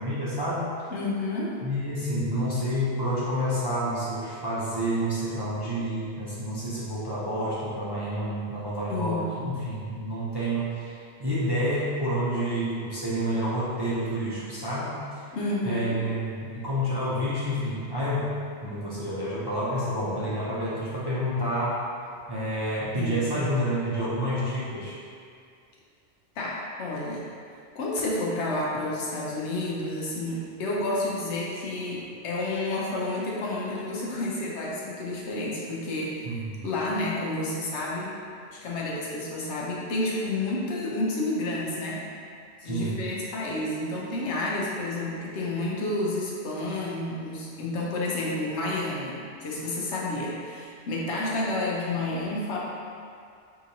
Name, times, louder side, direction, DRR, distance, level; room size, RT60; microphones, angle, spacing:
voice 1, 0.0-0.7 1.6-15.2 15.6-21.8 22.3-25.0 36.2-36.6 42.6-43.0, equal, 30° right, -10 dB, 0.5 m, -29 dB
voice 2, 0.9-1.6 8.9-9.6 15.3-16.0 22.9-23.4 26.4-27.2 27.7-36.3 36.6-38.1 38.5-42.0 42.6-52.6, left 2 dB, 80° left, -4 dB, 1.0 m, -30 dB
4.8 x 2.9 x 2.6 m, 2.3 s
omnidirectional pair, 1.2 m